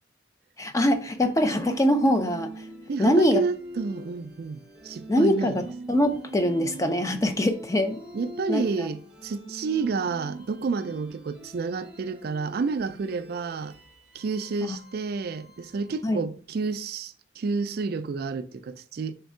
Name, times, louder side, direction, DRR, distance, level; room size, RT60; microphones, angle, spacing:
voice 1, 0.6-2.5 3.0-3.4 5.1-8.0 8.5-8.9 14.6-14.8 16.0-16.2, left 1 dB, 15° left, 0.4 m, -23 dB
sound 1, 1.1-16.2, right 1 dB, 5° right, 0.8 m, -44 dB
voice 2, 2.9-5.6 8.1-13.8 14.1-19.1, right 4 dB, 55° right, 0.3 m, -30 dB
3.6 x 3.3 x 4.3 m
head